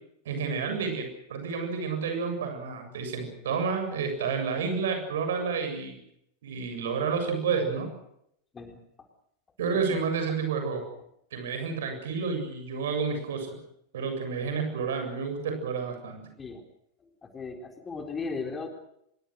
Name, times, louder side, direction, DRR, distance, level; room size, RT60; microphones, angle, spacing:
voice 1, 0.3-6.0 6.4-7.9 9.6-10.8 11.3-13.6 13.9-16.3, right 5 dB, 60° right, 6 dB, 7.5 m, -30 dB
voice 2, 17.0-18.7, left 4 dB, 20° left, 4 dB, 3.9 m, -37 dB
26.0 x 23.5 x 6.5 m, 0.74 s
figure-of-eight pair, 90°, 0 cm